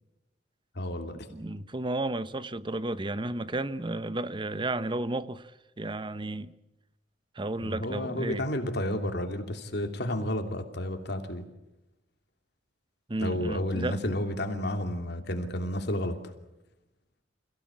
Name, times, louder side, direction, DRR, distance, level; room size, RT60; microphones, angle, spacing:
voice 1, 0.7-1.3 7.6-11.5 13.2-16.3, left 1 dB, 60° left, 2.8 m, -31 dB
voice 2, 1.3-6.5 7.3-8.4 13.1-14.0, right 2 dB, 25° right, 0.8 m, -33 dB
28.0 x 16.5 x 8.7 m
head